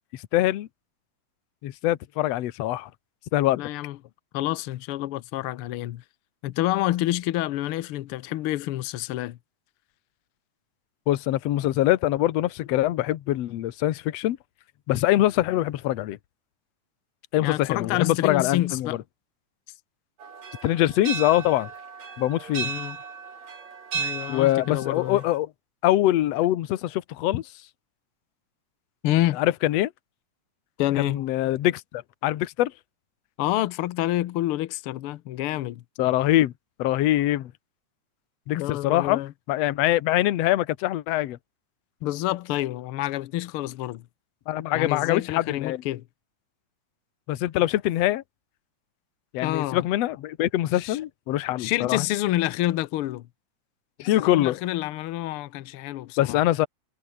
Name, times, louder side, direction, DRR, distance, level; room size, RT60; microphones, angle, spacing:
voice 1, 0.1-0.7 1.6-2.9 3.3-3.6 11.1-14.4 14.9-16.2 17.3-18.9 20.6-21.7 22.2-22.7 24.3-25.5 25.8-27.4 29.4-29.9 31.0-32.7 36.0-36.5 36.8-37.5 38.5-39.2 39.5-41.4 44.5-45.8 47.3-48.2 49.3-52.1 54.0-54.6 56.2-56.7, left 14 dB, 65° left, 2.0 m, -23 dB
voice 2, 3.5-4.0 4.3-6.0 6.4-9.4 17.4-19.0 22.6-23.0 23.9-25.2 27.3-27.4 29.0-29.4 30.8-31.2 33.4-35.8 38.5-39.3 42.0-44.0 44.7-46.0 49.4-49.8 50.7-51.0 51.6-53.3 54.0-56.4, left 15 dB, 85° left, 1.2 m, -28 dB
sound 1, 20.2-25.4, right 6 dB, 60° right, 4.7 m, -35 dB
omnidirectional pair, 3.5 m